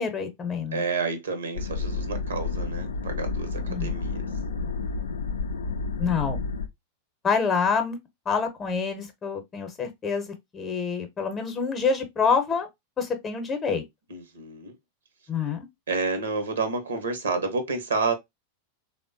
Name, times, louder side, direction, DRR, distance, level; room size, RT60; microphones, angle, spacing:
voice 1, 0.0-0.8 3.7-3.9 6.0-6.4 7.2-8.0 8.3-12.7 13.0-13.8 15.3-15.7, left 5 dB, 20° left, 0.7 m, -27 dB
voice 2, 0.7-4.3 14.1-14.7 15.9-18.1, right 4 dB, 65° right, 0.7 m, -29 dB
sound 1, 1.5-6.7, left 4 dB, 70° left, 0.4 m, -30 dB
3.3 x 2.1 x 2.5 m
figure-of-eight pair, 90°, 0 cm